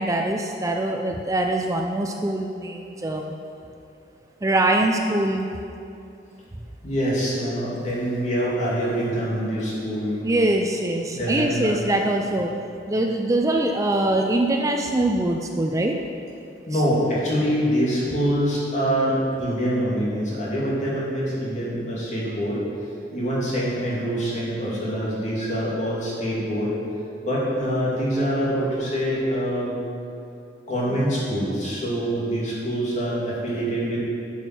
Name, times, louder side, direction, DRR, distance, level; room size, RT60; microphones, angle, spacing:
voice 1, 0.0-3.3 4.4-5.5 10.2-12.5 12.9-15.9, right 1 dB, 20° right, 2 dB, 0.5 m, -23 dB
voice 2, 6.8-10.2 11.1-11.8 16.7-22.6 23.1-26.7 27.2-29.7 30.7-34.0, equal, 40° left, -6 dB, 2.8 m, -25 dB
11.5 x 6.2 x 6.0 m, 2.6 s
head